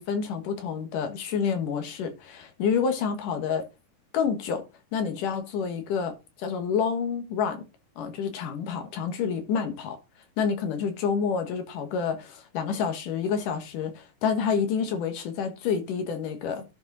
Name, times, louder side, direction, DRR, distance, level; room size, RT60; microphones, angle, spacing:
voice 1, 0.0-3.7 4.1-4.6 4.9-7.6 8.0-10.0 10.4-16.6, left 6 dB, 85° left, 3.0 m, -28 dB
11.5 x 5.1 x 4.0 m
omnidirectional pair, 3.6 m